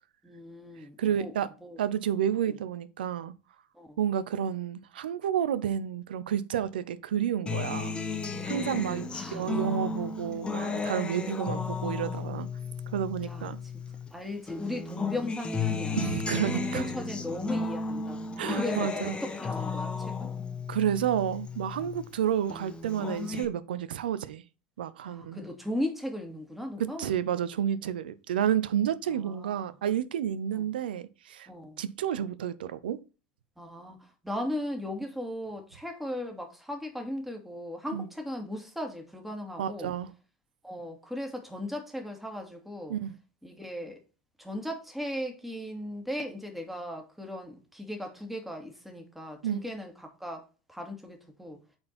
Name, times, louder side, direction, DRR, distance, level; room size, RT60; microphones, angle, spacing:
voice 1, 0.2-1.3 1.6-1.8 2.4-2.5 3.7-4.0 9.1-9.5 9.9-10.0 13.2-13.5 14.1-16.2 16.5-18.2 18.5-20.3 21.8-22.0 25.0-27.1 29.1-29.7 30.5-30.7 31.5-31.8 33.6-39.9 40.6-43.0 43.4-44.0 44.4-51.6, left 1 dB, 5° right, 2.3 m, -37 dB
voice 2, 1.0-1.5 1.8-3.3 4.0-8.0 8.4-12.5 12.9-13.6 15.9-16.8 18.4-19.2 20.7-24.4 24.8-25.4 26.8-31.5 31.8-33.0 37.9-38.1 39.6-40.1 42.9-43.1 49.4-49.6, right 9 dB, 75° right, 0.7 m, -30 dB
Acoustic guitar, 7.5-14.1 14.5-22.1 22.5-23.4, left 4 dB, 20° left, 1.4 m, -34 dB
8.5 x 4.5 x 4.2 m
hypercardioid pair, 85°, 5 cm